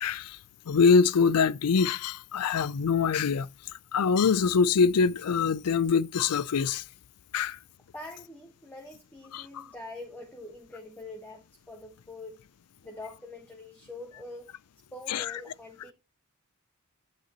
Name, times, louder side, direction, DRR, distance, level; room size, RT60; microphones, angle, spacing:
voice 1, 0.0-0.4 0.7-3.5 3.9-6.8 7.3-7.6 9.3-9.6 15.1-15.2, left 5 dB, 90° left, 0.5 m, -24 dB
voice 2, 7.9-12.4 12.8-14.5 14.9-15.9, left 2 dB, 10° left, 1.3 m, -44 dB
10.0 x 8.6 x 2.9 m
head